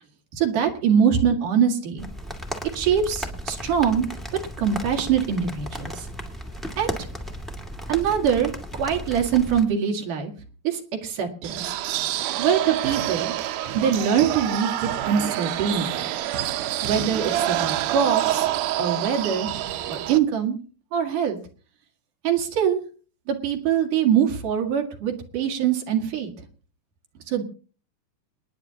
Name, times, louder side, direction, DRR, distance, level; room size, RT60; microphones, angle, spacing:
voice 1, 0.4-2.1 2.8-4.1 4.6-6.1 6.8-6.9 7.9-10.3 10.6-11.7 12.4-16.0 16.8-19.5 19.9-20.6 20.9-21.4 22.2-22.8 23.3-26.3 27.3-27.4, right 8 dB, 65° right, 2 dB, 3.5 m, -23 dB
sound 1, 2.0-9.6, equal, ahead, 0.9 m, -35 dB
sound 2, 11.4-20.2, right 13 dB, 85° right, 2.7 m, -27 dB
28.0 x 10.0 x 2.9 m, 0.37 s
omnidirectional pair, 4.2 m